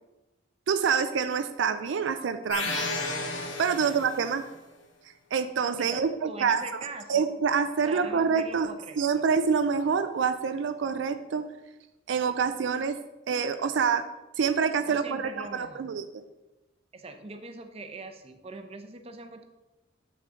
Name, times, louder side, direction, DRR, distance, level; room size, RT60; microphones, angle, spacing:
voice 1, 0.7-2.9 3.6-4.4 5.3-6.6 7.1-11.5 12.1-13.0 13.3-14.0 14.4-16.0, right 6 dB, 75° right, 9 dB, 0.4 m, -26 dB
sound 1, 2.5-4.4, left 2 dB, 80° left, 1.3 m, -32 dB
voice 2, 5.8-7.3 7.9-9.2 14.9-15.9 16.9-19.4, right 2 dB, 30° right, 6 dB, 0.7 m, -42 dB
7.1 x 6.1 x 3.8 m, 1.0 s
head